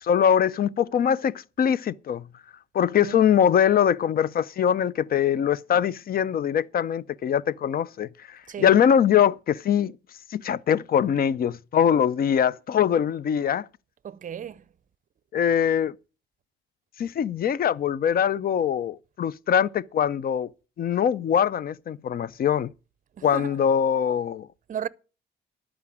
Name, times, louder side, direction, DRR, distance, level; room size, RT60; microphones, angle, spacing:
voice 1, 0.0-2.3 2.7-9.9 10.3-13.7 15.3-15.9 17.0-20.5 20.8-22.7 23.2-24.5, left 8 dB, 50° left, 0.5 m, -22 dB
voice 2, 14.0-14.6 23.2-23.6 24.7-24.9, right 9 dB, 40° right, 0.6 m, -35 dB
12.0 x 5.1 x 8.6 m
cardioid pair, 90°, 20 cm